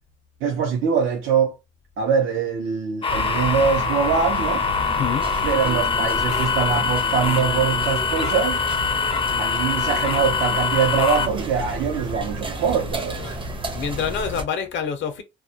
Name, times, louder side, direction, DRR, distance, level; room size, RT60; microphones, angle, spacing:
voice 1, 0.4-1.5 2.0-4.6 5.4-8.6 9.4-13.4, right 6 dB, 75° right, 0.6 m, -23 dB
sound 1, 3.0-11.3, left 5 dB, 25° left, 0.4 m, -24 dB
sound 2, 3.1-14.4, right 1 dB, 25° right, 0.5 m, -31 dB
voice 2, 4.9-5.3 13.2-13.4 13.7-15.2, left 7 dB, 70° left, 0.6 m, -27 dB
2.2 x 2.1 x 2.7 m
cardioid pair, 90°, 20 cm